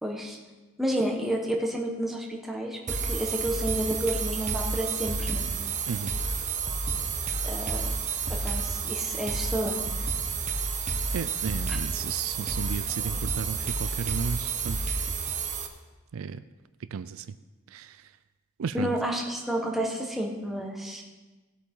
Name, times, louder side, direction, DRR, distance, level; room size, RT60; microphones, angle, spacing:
voice 1, 0.0-0.4 0.8-5.5 7.4-7.9 8.3-9.8 11.7-11.8 18.7-21.0, right 1 dB, ahead, -1 dB, 1.4 m, -30 dB
sound 1, 2.9-15.7, right 4 dB, 35° right, 1.0 m, -30 dB
voice 2, 11.1-14.8 16.1-16.4 16.9-17.3 17.7-18.0 18.6-18.9, right 6 dB, 70° right, 13 dB, 0.4 m, -34 dB
17.0 x 8.3 x 3.8 m, 1.2 s
head